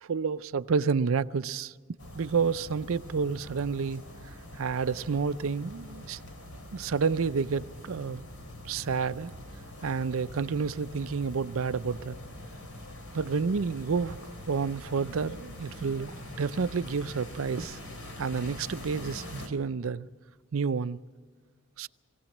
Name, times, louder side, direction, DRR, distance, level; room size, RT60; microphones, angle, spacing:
voice 1, 0.0-1.7 2.1-4.0 4.6-6.2 6.7-8.3 8.6-9.3 9.8-12.1 13.1-14.2 14.5-16.1 16.4-17.8 18.2-20.1 20.5-21.0 21.8-21.9, right 5 dB, 70° right, 0.5 m, -29 dB
sound 1, 2.0-19.5, left 1 dB, 90° left, 3.2 m, -44 dB
22.5 x 17.0 x 7.3 m
head